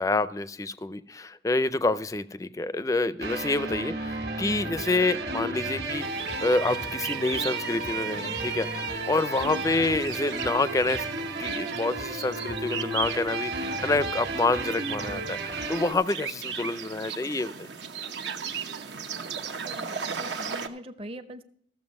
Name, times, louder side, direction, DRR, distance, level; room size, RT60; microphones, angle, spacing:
voice 1, 0.0-11.1 11.4-17.7, left 2 dB, 20° left, 0.4 m, -28 dB
sound 1, 3.2-15.9, right 2 dB, 65° right, 1.5 m, -33 dB
sound 2, 5.9-20.7, right 6 dB, 85° right, 0.9 m, -37 dB
voice 2, 19.6-21.4, equal, 30° right, 0.6 m, -42 dB
14.0 x 7.3 x 5.3 m
head